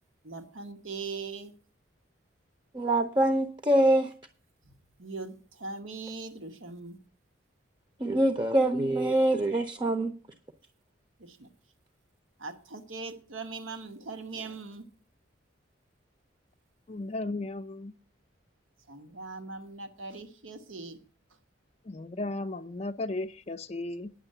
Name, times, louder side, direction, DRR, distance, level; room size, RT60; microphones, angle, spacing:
voice 1, 0.2-1.5 5.0-7.0 11.2-11.5 12.4-14.9 18.9-21.0, right 3 dB, 80° right, 8 dB, 1.2 m, -40 dB
voice 2, 2.7-4.1 8.0-10.1, right 1 dB, 20° right, 7 dB, 0.6 m, -24 dB
voice 3, 16.9-18.0 21.9-24.1, left 2 dB, 30° left, 10 dB, 0.4 m, -35 dB
9.9 x 6.4 x 7.8 m, 0.42 s
head